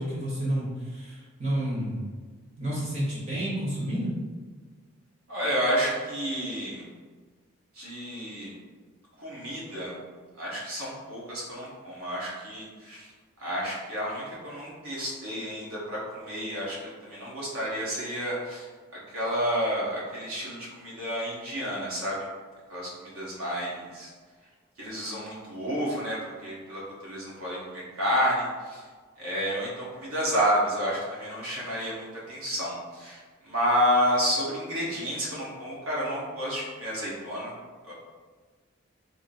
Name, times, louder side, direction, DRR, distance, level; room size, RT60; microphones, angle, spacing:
voice 1, 0.0-2.0 2.6-4.1, right 1 dB, 30° right, -7 dB, 1.0 m, -30 dB
voice 2, 5.3-6.8 7.7-8.5 9.2-9.9 10.4-13.1 13.4-18.7 19.1-22.3 22.7-24.1 24.8-28.8 29.2-37.5 37.8-37.9, equal, 80° right, -6 dB, 1.2 m, -30 dB
3.8 x 2.0 x 4.1 m, 1.5 s
head